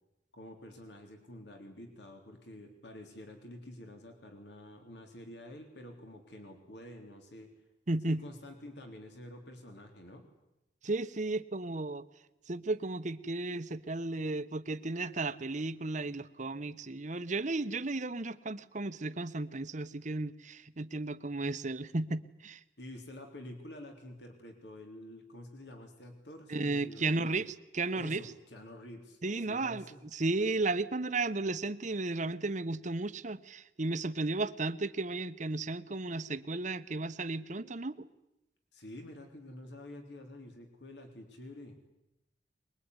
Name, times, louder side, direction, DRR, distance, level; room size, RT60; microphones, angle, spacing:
voice 1, 0.3-7.5 8.1-10.2 22.8-27.4 27.9-30.0 38.7-41.7, left 1 dB, 70° left, 4 dB, 3.8 m, -49 dB
voice 2, 7.9-8.2 10.8-12.1 12.5-22.6 26.5-28.2 29.2-29.9 30.1-38.1, right 2 dB, 45° right, 12 dB, 1.0 m, -34 dB
24.0 x 21.5 x 9.8 m, 0.89 s
head